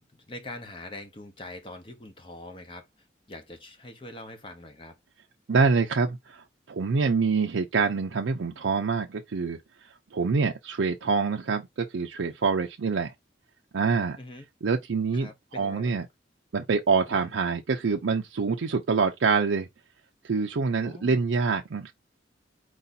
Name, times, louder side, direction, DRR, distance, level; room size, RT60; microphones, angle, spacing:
voice 1, 0.0-2.9 3.3-5.0 14.2-14.4 15.1-16.0 17.1-17.3 20.8-21.2, left 2 dB, 30° left, 0.7 m, -43 dB
voice 2, 5.5-9.6 10.1-13.1 13.7-14.2 14.6-15.3 15.5-16.1 16.5-19.7 20.2-21.9, right 4 dB, 85° right, 0.5 m, -26 dB
4.7 x 2.7 x 4.0 m
head